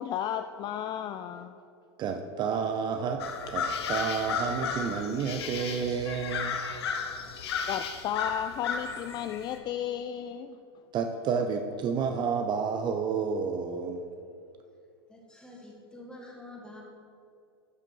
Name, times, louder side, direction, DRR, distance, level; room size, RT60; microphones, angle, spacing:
voice 1, 0.0-1.6 7.7-10.6, left 10 dB, 30° left, 8 dB, 0.3 m, -33 dB
voice 2, 2.0-3.2 3.5-6.6 10.9-14.0, right 6 dB, 35° right, 6 dB, 0.6 m, -30 dB
sound 1, 3.2-9.6, left 6 dB, 70° left, 1.0 m, -34 dB
voice 3, 15.1-16.8, left 1 dB, 5° left, -1 dB, 2.1 m, -47 dB
12.0 x 5.8 x 4.6 m, 2.5 s
hypercardioid pair, 100°, 14 cm